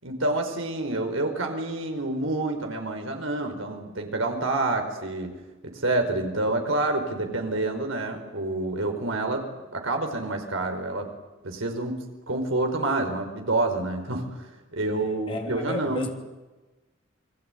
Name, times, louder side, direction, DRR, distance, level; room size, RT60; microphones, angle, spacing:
voice 1, 0.0-5.3 5.6-9.5 9.7-11.1 11.4-12.0 12.3-14.3 14.7-16.1, right 2 dB, 80° right, 4 dB, 5.1 m, -28 dB
voice 2, 14.9-16.1, left 1 dB, 25° left, 3 dB, 3.3 m, -34 dB
28.0 x 21.5 x 9.4 m, 1.1 s
head